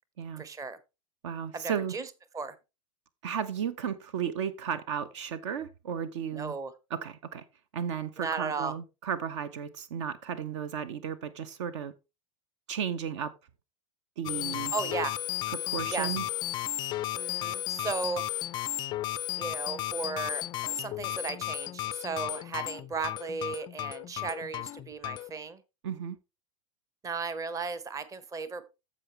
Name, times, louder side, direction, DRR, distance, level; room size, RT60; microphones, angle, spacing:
voice 1, 0.4-0.8 1.5-2.1 2.3-2.5 6.3-6.7 8.2-8.7 14.7-15.1 15.9-16.1 17.1-18.2 19.3-25.6 27.0-28.6, right 4 dB, 20° right, 0.9 m, -35 dB
voice 2, 1.2-1.9 3.2-6.5 6.9-7.4 7.7-11.9 12.7-13.3 14.2-14.7 15.5-16.2 25.8-26.2, right 8 dB, 55° right, 0.8 m, -34 dB
sound 1, 14.2-25.3, left 15 dB, 25° left, 0.3 m, -34 dB
14.5 x 5.1 x 3.2 m
figure-of-eight pair, 85°, 18 cm